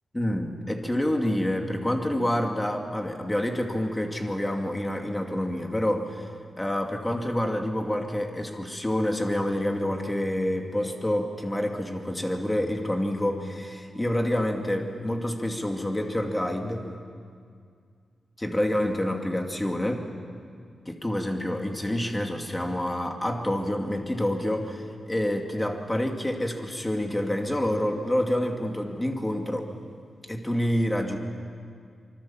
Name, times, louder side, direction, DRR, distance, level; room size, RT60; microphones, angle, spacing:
voice 1, 0.1-6.3 6.6-16.9 18.4-20.1 20.9-29.6 30.3-31.2, left 1 dB, 10° left, 3 dB, 2.4 m, -27 dB
25.5 x 24.5 x 7.3 m, 2.2 s
wide cardioid pair, 130°, 0 cm